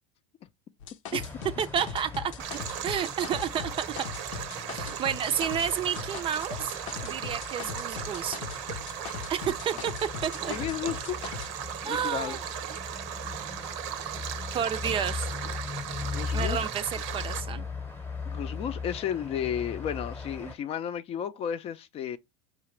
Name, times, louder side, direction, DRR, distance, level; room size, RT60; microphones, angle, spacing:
sound 1, 0.8-5.7 6.0-11.5, left 8 dB, 80° left, 0.7 m, -40 dB
sound 2, 1.1-20.5, left 4 dB, 15° left, 0.9 m, -39 dB
voice 1, 1.6-4.1 4.7-6.7 7.0-8.4 9.3-10.5 11.8-12.4 14.5-15.3 16.3-16.8 17.1-17.7 20.4-20.5, right 8 dB, 35° right, 0.5 m, -31 dB
Stream, 2.4-17.4, right 10 dB, 70° right, 0.7 m, -37 dB
voice 2, 10.4-11.3 11.8-12.4 16.0-16.6 18.2-22.2, left 9 dB, 40° left, 0.5 m, -33 dB
5.0 x 2.7 x 3.2 m
hypercardioid pair, 100°, 16 cm